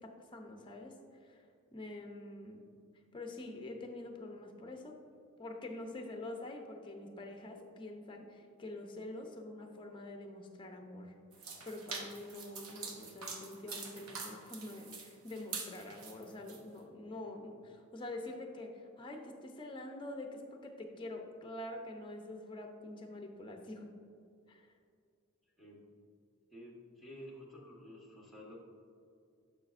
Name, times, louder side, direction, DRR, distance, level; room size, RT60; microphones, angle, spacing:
voice 1, 0.0-1.4 1.7-2.7 3.1-5.0 5.4-11.1 11.6-23.9 24.5-24.7, left 2 dB, 25° left, 3 dB, 0.6 m, -46 dB
sound 1, 11.3-16.6, right 4 dB, 85° right, 0.9 m, -45 dB
voice 2, 25.6-25.9 26.5-28.6, equal, ahead, -3 dB, 1.1 m, -51 dB
11.0 x 4.8 x 2.5 m, 2.4 s
head